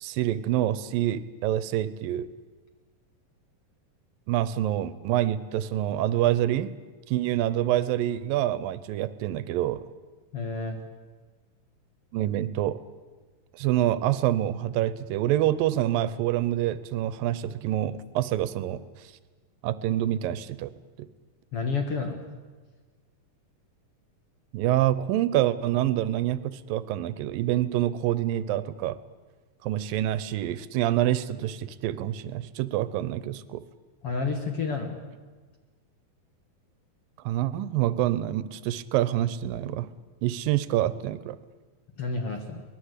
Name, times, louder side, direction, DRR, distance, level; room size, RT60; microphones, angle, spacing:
voice 1, 0.0-2.3 4.3-6.7 7.1-9.8 12.1-12.8 13.5-18.8 19.6-20.7 24.5-29.0 29.6-33.6 37.2-39.9 40.2-41.4, right 13 dB, 85° right, 16 dB, 2.5 m, -26 dB
voice 2, 10.3-10.8 21.5-22.2 34.0-35.0 42.0-42.6, left 4 dB, 50° left, 4 dB, 2.3 m, -30 dB
23.5 x 19.5 x 8.2 m, 1.4 s
omnidirectional pair, 4.0 m